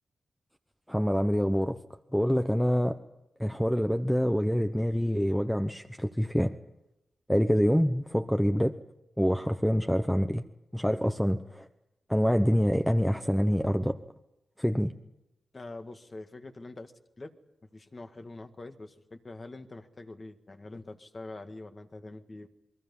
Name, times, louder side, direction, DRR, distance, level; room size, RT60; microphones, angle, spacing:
voice 1, 0.9-1.8 2.1-3.0 3.4-6.5 7.3-8.7 9.2-10.4 10.7-11.7 12.1-14.0 14.6-14.9, equal, ahead, 7 dB, 0.9 m, -26 dB
voice 2, 15.5-16.9 17.2-17.3 17.6-22.5, left 2 dB, 35° left, 6 dB, 1.8 m, -44 dB
28.5 x 22.0 x 5.6 m, 0.94 s
cardioid pair, 80°, 0 cm